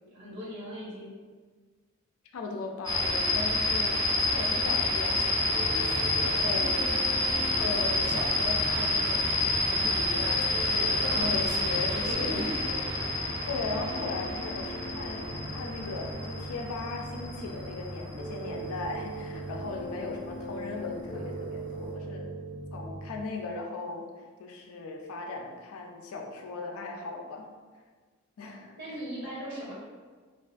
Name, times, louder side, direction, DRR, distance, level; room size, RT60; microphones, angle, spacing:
voice 1, 0.1-1.1 6.6-6.9 10.9-11.4 12.0-13.3 28.8-29.7, equal, 55° right, -8 dB, 0.6 m, -38 dB
voice 2, 2.3-6.7 7.6-12.4 13.5-22.4 22.7-27.5 28.4-29.0, left 3 dB, 85° left, 1 dB, 0.4 m, -38 dB
sound 1, 2.8-19.5, left 2 dB, 20° right, 0.4 m, -29 dB
sound 2, 5.5-23.2, right 1 dB, 85° right, 0.8 m, -40 dB
2.4 x 2.3 x 2.5 m, 1.5 s
head